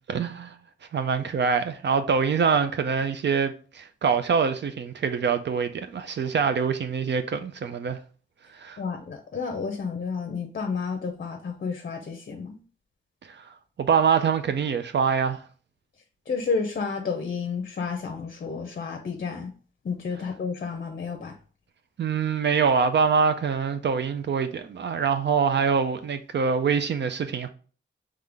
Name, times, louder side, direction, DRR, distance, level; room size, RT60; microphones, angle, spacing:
voice 1, 0.1-0.6 0.9-8.0 8.5-8.8 13.3-13.5 13.8-15.4 22.0-27.5, right 6 dB, 60° right, 0.4 m, -24 dB
voice 2, 8.8-12.6 16.3-19.5 19.8-21.3, left 5 dB, 50° left, 0.6 m, -31 dB
3.7 x 3.2 x 3.4 m
wide cardioid pair, 100°, 21 cm